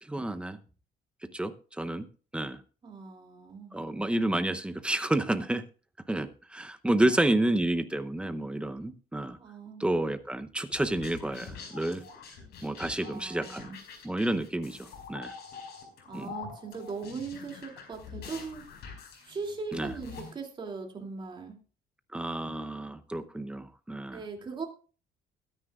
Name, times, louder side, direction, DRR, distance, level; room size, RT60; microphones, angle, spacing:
voice 1, 0.0-0.6 1.3-2.1 2.3-2.6 3.7-5.6 6.1-9.4 9.8-12.0 12.6-13.7 14.0-15.3 16.1-16.3 19.7-19.9 22.1-24.2, right 1 dB, 5° right, 9 dB, 0.7 m, -30 dB
voice 2, 2.8-3.8 6.9-7.5 9.4-9.9 12.9-13.8 16.0-18.6 19.2-21.6 24.1-24.7, right 4 dB, 25° right, 2 dB, 2.6 m, -40 dB
sound 1, 10.7-20.3, left 6 dB, 70° left, 5.1 m, -45 dB
22.0 x 9.9 x 2.4 m, 0.36 s
cardioid pair, 170°, 17 cm